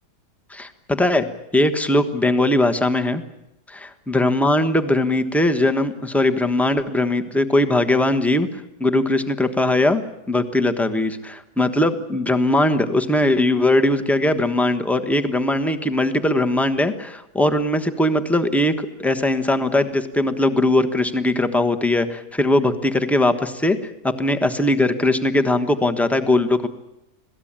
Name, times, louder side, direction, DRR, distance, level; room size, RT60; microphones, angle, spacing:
voice 1, 0.5-1.3 1.5-3.2 4.1-8.5 8.8-10.0 10.3-23.8 24.0-26.7, left 1 dB, ahead, 8 dB, 1.0 m, -20 dB
26.5 x 17.5 x 8.9 m, 0.91 s
omnidirectional pair, 1.8 m